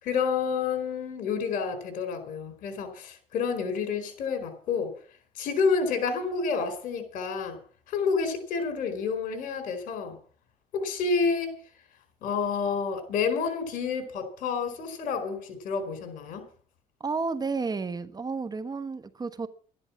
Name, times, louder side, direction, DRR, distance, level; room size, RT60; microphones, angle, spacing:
voice 1, 0.0-4.9 5.4-7.6 7.9-10.2 10.7-11.6 12.2-16.4, left 5 dB, 70° left, 4.5 m, -29 dB
voice 2, 17.0-19.5, right 4 dB, 25° right, 1.3 m, -31 dB
12.5 x 11.0 x 7.3 m
supercardioid pair, 85°, 15 cm